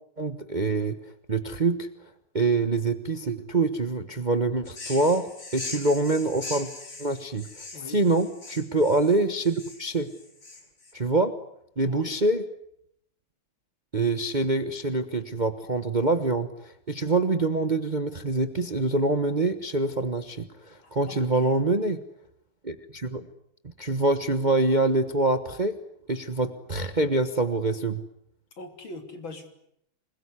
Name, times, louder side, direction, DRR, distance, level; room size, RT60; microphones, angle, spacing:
voice 1, 0.2-1.0 1.3-1.9 2.3-6.7 7.0-7.5 7.9-10.1 10.9-11.3 11.8-12.4 13.9-22.0 22.6-23.3 23.8-25.8 26.1-28.0, right 2 dB, 25° right, 9 dB, 1.1 m, -25 dB
sound 1, 4.7-10.9, left 3 dB, 30° left, 3.4 m, -41 dB
voice 2, 7.7-8.0 11.8-12.2 20.8-21.6 28.6-29.5, left 2 dB, 65° left, 6 dB, 4.0 m, -42 dB
26.5 x 21.5 x 9.9 m, 0.75 s
omnidirectional pair, 2.3 m